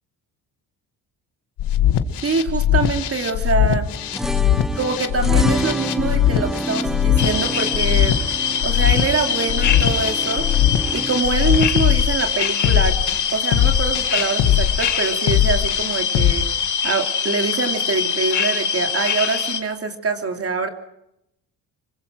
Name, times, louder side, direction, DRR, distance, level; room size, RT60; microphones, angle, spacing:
sound 1, 1.6-16.3, left 11 dB, 90° left, 2.0 m, -20 dB
voice 1, 2.2-3.9 4.8-8.2 8.6-10.4 10.9-20.7, right 4 dB, 35° right, 5 dB, 2.9 m, -24 dB
sound 2, 3.9-11.2, right 1 dB, ahead, 0.9 m, -29 dB
sound 3, 7.2-19.6, left 7 dB, 45° left, 2.2 m, -24 dB
26.0 x 24.0 x 6.3 m, 0.81 s
cardioid pair, 135°, 41 cm